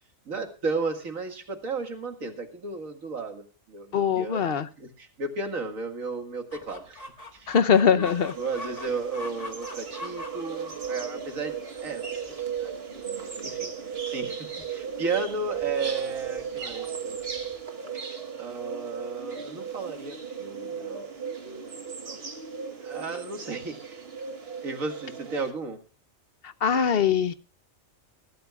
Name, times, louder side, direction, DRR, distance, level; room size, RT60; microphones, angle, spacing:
voice 1, 0.3-7.0 7.3-7.6 7.9-8.1 8.4-11.5 11.8-12.0 12.6-12.7 13.0-17.2 18.4-21.1 22.0-22.2 22.8-24.0 24.6-25.8, right 4 dB, 85° right, 5 dB, 2.4 m, -34 dB
voice 2, 3.9-4.7 7.5-8.3 26.4-27.3, left 7 dB, 55° left, 12 dB, 0.9 m, -22 dB
Chicken rooster, 6.5-17.6, left 1 dB, 30° left, 1.5 m, -45 dB
sound 1, 8.0-25.5, right 7 dB, 50° right, 1.7 m, -36 dB
22.0 x 12.5 x 2.4 m, 0.34 s
omnidirectional pair, 1.4 m